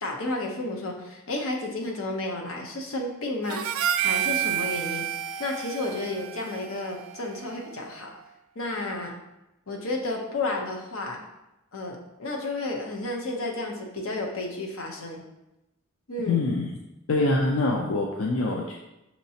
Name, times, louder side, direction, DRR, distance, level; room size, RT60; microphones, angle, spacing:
voice 1, 0.0-3.7 4.0-5.1 5.4-8.1 8.5-9.1 9.7-11.2 11.7-15.2 16.1-16.4, left 2 dB, 90° left, 0 dB, 0.9 m, -32 dB
Harmonica, 3.5-8.0, right 11 dB, 80° right, 0.3 m, -30 dB
voice 2, 16.3-16.7 17.1-18.7, left 2 dB, 75° left, -1 dB, 0.5 m, -24 dB
6.4 x 3.0 x 2.8 m, 0.94 s
head